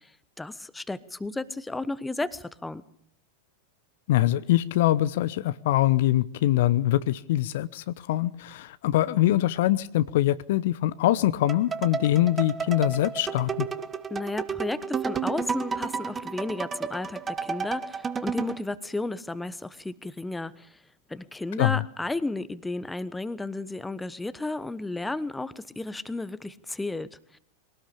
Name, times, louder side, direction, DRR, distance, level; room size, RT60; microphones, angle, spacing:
voice 1, 0.0-2.8 14.1-20.8 21.1-27.4, left 2 dB, 5° left, 16 dB, 1.1 m, -33 dB
voice 2, 4.1-13.7 21.6-21.8, left 14 dB, 55° left, 16 dB, 0.8 m, -23 dB
sound 1, 11.5-18.6, right 6 dB, 20° right, 1.4 m, -32 dB
23.5 x 18.5 x 8.5 m, 0.67 s
figure-of-eight pair, 90°, 0 cm